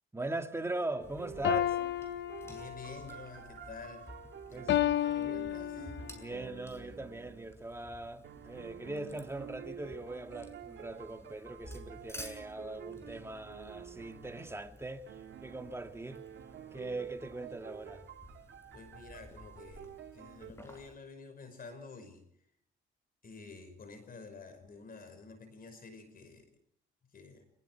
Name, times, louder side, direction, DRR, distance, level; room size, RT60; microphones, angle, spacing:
voice 1, 0.1-1.8 4.5-5.4 6.1-16.2 16.7-18.1, right 2 dB, 15° right, 2.5 m, -41 dB
sound 1, 1.0-20.9, left 1 dB, 10° left, 6.7 m, -54 dB
sound 2, 1.1-7.5 8.2-14.7 15.1-20.5, right 9 dB, 70° right, 1.5 m, -50 dB
sound 3, 1.4-3.0 4.7-6.2, left 11 dB, 65° left, 0.8 m, -31 dB
voice 2, 2.4-4.1 4.5-4.7 5.1-5.9 18.7-22.3 23.2-26.5 27.1-27.4, left 4 dB, 45° left, 5.4 m, -50 dB
24.5 x 23.0 x 4.7 m
cardioid pair, 90°, 20 cm